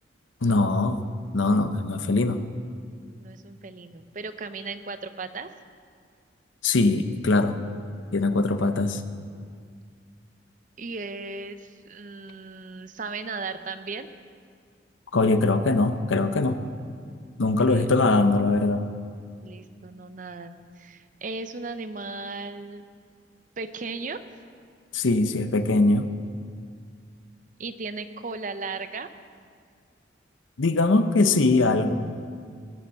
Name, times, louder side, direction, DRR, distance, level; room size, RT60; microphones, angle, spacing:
voice 1, 0.4-1.0 1.3-2.4 6.6-7.6 8.1-9.0 15.1-16.6 17.4-18.9 24.9-26.1 30.6-31.9, left 3 dB, 90° left, 9 dB, 0.8 m, -21 dB
voice 2, 3.2-5.5 10.8-14.1 17.4-17.9 19.4-22.9 23.6-24.2 27.6-29.1, right 4 dB, 45° right, 11 dB, 0.6 m, -36 dB
18.5 x 7.0 x 7.5 m, 2.1 s
head